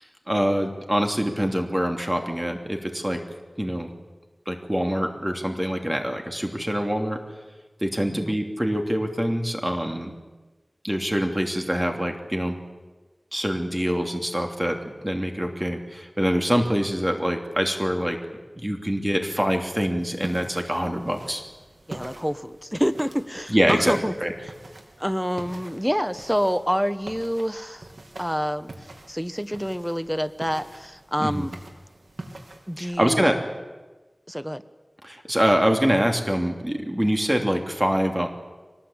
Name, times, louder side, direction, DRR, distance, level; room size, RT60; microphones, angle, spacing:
voice 1, 0.3-3.2 3.6-3.9 4.5-7.2 7.8-10.1 10.8-12.6 13.3-18.2 18.6-21.4 23.5-24.3 31.2-31.4 32.8-33.3 35.0-38.3, equal, 20° right, 3 dB, 3.0 m, -25 dB
sound 1, 20.0-33.0, right 2 dB, 85° right, 2.9 m, -43 dB
voice 2, 21.9-24.1 25.0-27.9 28.2-28.7 29.1-31.5 32.7-33.3 34.3-34.6, equal, ahead, 11 dB, 1.1 m, -27 dB
23.5 x 19.5 x 8.8 m, 1.2 s
wide cardioid pair, 55°, 0 cm